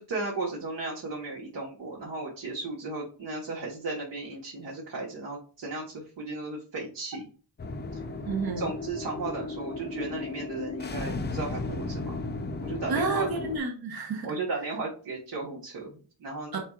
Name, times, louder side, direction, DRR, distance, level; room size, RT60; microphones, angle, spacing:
voice 1, 0.0-7.2 7.9-8.0 8.6-12.2 12.6-13.3 14.2-16.6, right 3 dB, 70° right, -3 dB, 1.5 m, -35 dB
sound 1, 7.6-13.6, left 3 dB, 25° left, 0.5 m, -35 dB
voice 2, 8.3-8.8 12.9-14.3 16.5-16.6, right 3 dB, 55° right, 2 dB, 1.2 m, -30 dB
4.9 x 4.4 x 2.4 m, 0.39 s
wide cardioid pair, 135°, 43 cm